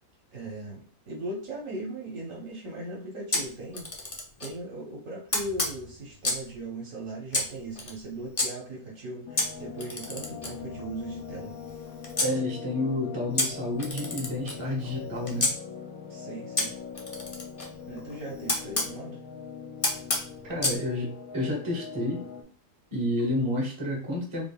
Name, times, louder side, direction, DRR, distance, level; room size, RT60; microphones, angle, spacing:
voice 1, 0.3-4.1 4.4-11.5 12.2-12.4 16.1-16.7 17.9-19.2, right 2 dB, 55° right, -3 dB, 1.3 m, -38 dB
Camera, 3.3-4.6 5.3-6.5 7.3-8.5 9.4-12.3 13.4-15.5 16.6-18.9 19.8-20.8, left 2 dB, 50° left, 0.4 m, -31 dB
sound 1, 9.3-22.4, left 6 dB, 70° left, 1.1 m, -42 dB
voice 2, 12.2-15.5 20.4-22.3 22.9-24.5, left 1 dB, 20° right, -3 dB, 1.0 m, -30 dB
3.7 x 3.5 x 2.3 m, 0.42 s
omnidirectional pair, 1.8 m